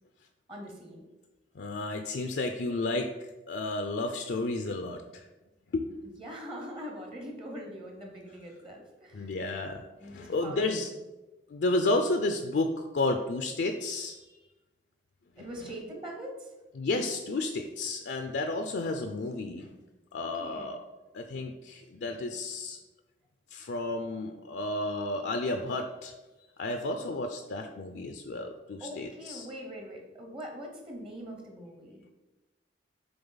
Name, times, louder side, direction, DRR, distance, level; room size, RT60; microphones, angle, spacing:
voice 1, 0.5-1.0 6.2-9.4 10.0-10.9 15.4-16.5 20.2-20.7 28.8-32.0, equal, 30° right, 1 dB, 0.9 m, -43 dB
voice 2, 1.6-3.1 3.5-5.3 5.7-6.2 9.1-9.8 10.1-10.9 11.5-14.3 15.4-15.5 16.8-19.7 20.1-20.8 21.1-22.8 23.5-26.1 26.6-29.5, left 2 dB, 70° left, 5 dB, 0.4 m, -32 dB
6.8 x 3.9 x 4.0 m, 1.1 s
head